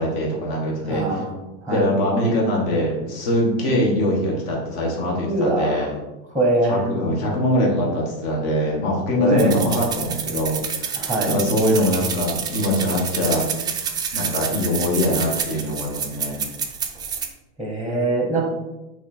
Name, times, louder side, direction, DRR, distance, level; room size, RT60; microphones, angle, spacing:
voice 1, 0.0-1.2 1.7-5.9 6.7-10.9 11.3-13.5 14.1-16.4, left 1 dB, 60° left, -2 dB, 1.9 m, -22 dB
voice 2, 0.9-1.3 1.6-1.8 5.2-5.9 6.3-6.8 9.2-9.5 10.9-11.3 17.6-18.4, right 2 dB, ahead, 0 dB, 0.9 m, -22 dB
sound 1, 9.4-17.3, right 7 dB, 15° right, 0.4 m, -28 dB
8.2 x 3.2 x 4.4 m, 1.0 s
cardioid pair, 165°, 32 cm